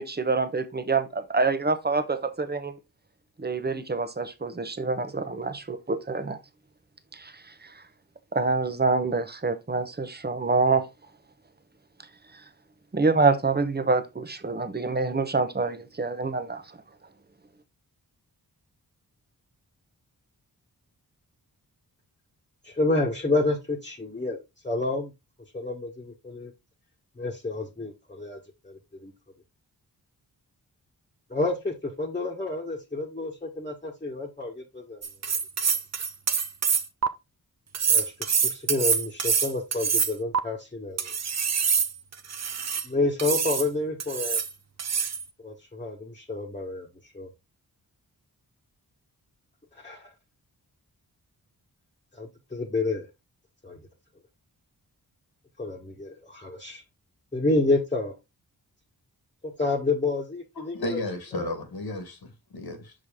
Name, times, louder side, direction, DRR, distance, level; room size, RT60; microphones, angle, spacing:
voice 1, 0.0-2.7 3.4-6.4 7.1-7.3 8.3-10.9 12.9-16.6, right 3 dB, 25° right, 1.1 m, -26 dB
voice 2, 22.6-24.4 24.6-25.1 25.5-26.5 27.2-28.4 28.6-29.1 31.3-35.0 37.9-41.1 42.8-44.4 45.4-46.9 47.1-47.3 49.8-50.1 52.1-53.1 53.6-53.8 55.6-56.8 57.3-58.1 59.4-61.0 61.3-61.5, left 2 dB, 20° left, 1.5 m, -29 dB
sound 1, 35.0-37.1 37.7-40.4 41.0-42.9 43.2-43.7 44.0-44.5 44.8-45.2, right 6 dB, 45° right, 0.7 m, -25 dB
voice 3, 60.5-62.9, left 2 dB, 70° left, 1.7 m, -34 dB
6.0 x 5.0 x 3.6 m
wide cardioid pair, 70°, 39 cm